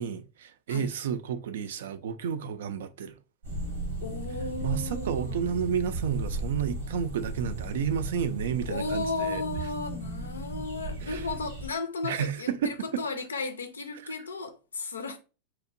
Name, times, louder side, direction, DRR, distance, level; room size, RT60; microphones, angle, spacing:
voice 1, 0.0-3.2 4.6-9.4 11.0-11.2 12.0-13.0, right 7 dB, 70° right, 0.3 m, -31 dB
sound 1, 3.4-11.7, right 2 dB, 85° right, 0.9 m, -36 dB
voice 2, 4.0-5.4 8.7-15.2, left 3 dB, 90° left, 0.4 m, -34 dB
2.8 x 2.1 x 2.5 m
hypercardioid pair, 100°, 0 cm